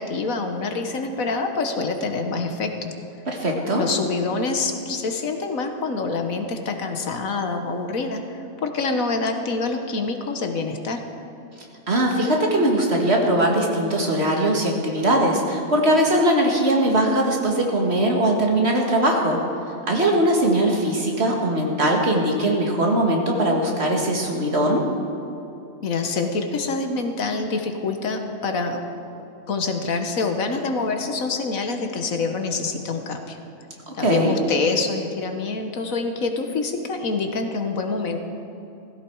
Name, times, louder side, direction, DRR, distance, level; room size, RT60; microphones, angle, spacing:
voice 1, 0.0-2.9 3.8-11.0 25.8-28.8 29.5-33.4 33.9-38.2, left 3 dB, 80° left, 5 dB, 1.6 m, -26 dB
voice 2, 3.3-3.8 11.9-19.4 19.9-24.9 33.9-34.4, right 1 dB, 50° right, 0 dB, 2.2 m, -20 dB
17.0 x 15.0 x 4.8 m, 2.9 s
omnidirectional pair, 1.4 m